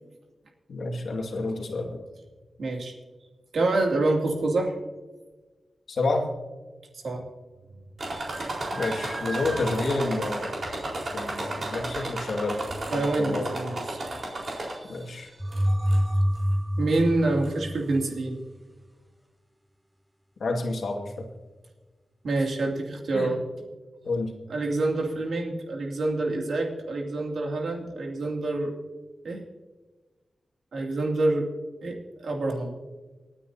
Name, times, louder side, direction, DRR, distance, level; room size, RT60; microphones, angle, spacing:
voice 1, 0.7-2.1 5.9-6.3 8.7-10.7 11.1-12.6 12.9-13.5 14.9-15.3 20.4-21.3 23.1-23.4 24.0-24.3, left 2 dB, 75° left, 1 dB, 2.2 m, -29 dB
voice 2, 2.6-2.9 3.5-4.7 6.9-7.2 12.9-14.0 16.8-18.4 22.2-23.4 24.5-28.7 29.2-29.4 30.7-31.5 31.8-32.8, right 2 dB, 85° right, 1 dB, 2.5 m, -27 dB
sound 1, 8.0-15.0 15.5-16.1 16.9-17.0 17.4-17.5, right 2 dB, 55° right, 4.3 m, -33 dB
sound 2, 15.4-18.3, equal, 5° right, 0.5 m, -26 dB
28.5 x 9.7 x 2.8 m, 1.3 s
wide cardioid pair, 110°, 0 cm